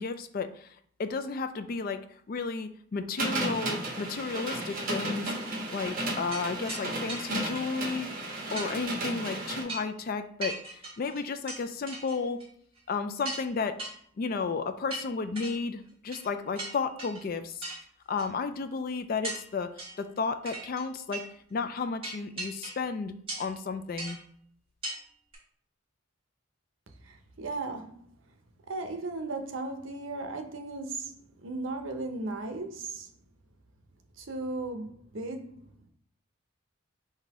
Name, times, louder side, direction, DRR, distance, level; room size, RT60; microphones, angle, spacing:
voice 1, 0.0-2.0 2.3-5.4 5.7-8.1 8.5-10.6 11.0-12.4 12.9-13.8 14.2-17.6 18.1-21.3 21.5-24.2, left 4 dB, 45° left, 0.3 m, -33 dB
sound 1, 3.2-9.6, right 1 dB, 40° right, 1.1 m, -33 dB
sound 2, 6.3-6.4 6.7-6.8 7.1-7.2 8.6-8.7 9.7-9.9 10.4-11.6 11.9-12.5 12.8-12.9 13.2-13.5 13.8-13.9 14.9-15.5 16.1-16.3 16.6-17.2 17.6-17.8 18.2-18.3 19.2-19.4 19.8-20.0 20.5-20.8 21.1-21.3 22.0-22.9 23.3-23.6 24.0-24.2 24.8-25.0 25.3-25.4, right 2 dB, 25° right, 1.8 m, -38 dB
voice 2, 27.0-28.0 28.7-33.1 34.2-35.6, right 2 dB, 65° right, 0.7 m, -36 dB
3.9 x 2.7 x 4.7 m
head